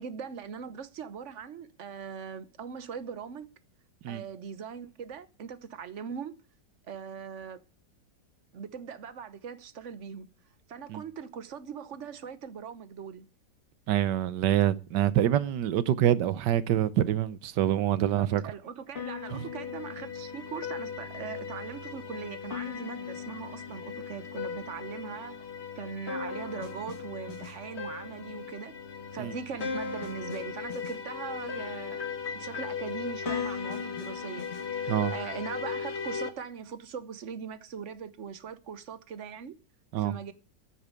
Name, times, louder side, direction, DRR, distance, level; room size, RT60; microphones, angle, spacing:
voice 1, 0.0-3.5 4.1-6.3 6.9-7.6 8.5-10.3 10.7-13.3 18.0-25.5 25.7-28.7 29.1-32.0 32.3-34.5 34.7-39.6 40.0-40.3, right 7 dB, 50° right, 1.1 m, -40 dB
voice 2, 13.9-18.4 19.3-19.4 29.2-29.3 34.9-35.1 39.9-40.1, right 11 dB, 75° right, 1.4 m, -26 dB
sound 1, 19.0-36.3, left 6 dB, 40° left, 1.4 m, -37 dB
9.7 x 8.5 x 8.3 m
omnidirectional pair, 1.9 m